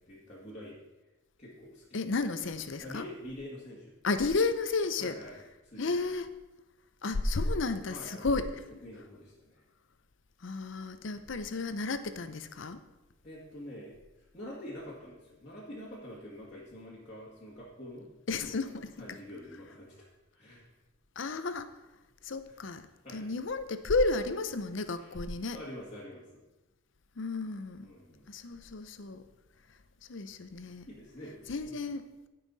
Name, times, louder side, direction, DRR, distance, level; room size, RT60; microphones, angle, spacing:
voice 1, 0.1-0.8 1.4-2.4 2.8-3.9 5.0-6.1 7.9-8.4 8.8-9.6 11.0-11.3 13.2-18.1 18.4-18.7 19.0-20.1 20.3-20.7 22.5-22.6 23.0-23.3 25.0-25.1 25.5-26.4 27.8-28.3 30.9-31.8, equal, 30° left, -8 dB, 1.9 m, -46 dB
voice 2, 1.9-3.0 4.0-5.2 5.8-6.3 7.0-8.5 10.4-12.8 18.3-18.9 21.2-21.7 22.2-22.9 23.1-25.6 27.2-27.9 28.3-29.2 30.1-30.9 31.5-32.1, left 3 dB, 60° left, 11 dB, 0.6 m, -32 dB
15.5 x 5.7 x 4.0 m, 1.1 s
head